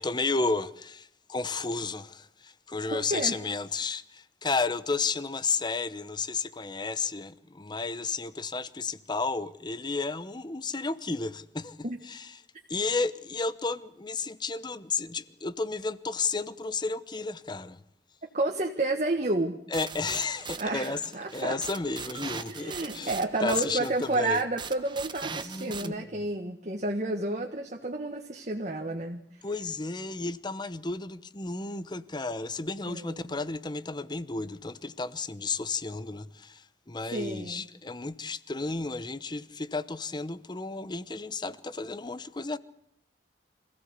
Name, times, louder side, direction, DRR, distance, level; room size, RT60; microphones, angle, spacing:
voice 1, 0.0-11.8 12.1-12.3 12.7-17.8 19.7-21.0 21.3-23.2 23.4-24.4 25.4-26.1 29.4-42.6, left 3 dB, 25° left, 0.9 m, -32 dB
voice 2, 2.9-3.4 11.8-12.0 18.3-19.6 20.6-21.6 22.5-29.4 32.9-33.3 37.1-37.7, right 2 dB, 40° right, 1.7 m, -31 dB
sound 1, 19.7-25.9, right 5 dB, 25° right, 1.2 m, -40 dB
25.5 x 16.5 x 8.1 m
head